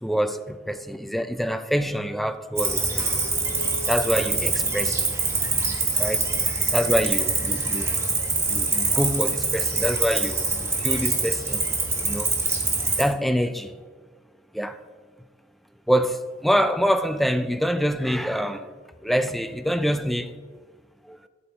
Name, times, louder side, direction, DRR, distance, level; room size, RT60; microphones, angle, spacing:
voice 1, 0.0-3.1 3.9-5.1 6.0-6.2 6.7-7.9 8.5-11.6 12.0-12.3 13.0-13.8 14.5-14.8 15.9-18.7 19.0-20.3 21.1-21.2, equal, ahead, 0.4 m, -25 dB
Cricket, 2.6-13.0, right 3 dB, 15° right, 1.4 m, -24 dB
10.5 x 7.8 x 4.1 m
head